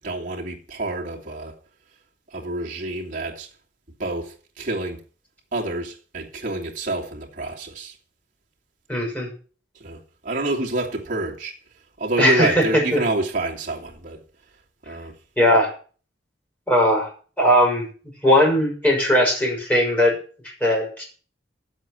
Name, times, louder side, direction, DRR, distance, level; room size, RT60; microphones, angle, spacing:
voice 1, 0.0-1.5 2.3-3.5 4.0-5.0 5.5-8.0 9.8-11.6 12.0-14.2 14.8-15.1, right 2 dB, 45° right, 2.8 m, -28 dB
voice 2, 8.9-9.3 12.2-12.6 12.9-13.0 15.4-15.7 16.7-17.1 17.4-17.9 18.2-20.2 20.6-21.0, equal, 10° left, 5.5 m, -18 dB
9.2 x 8.0 x 8.6 m
head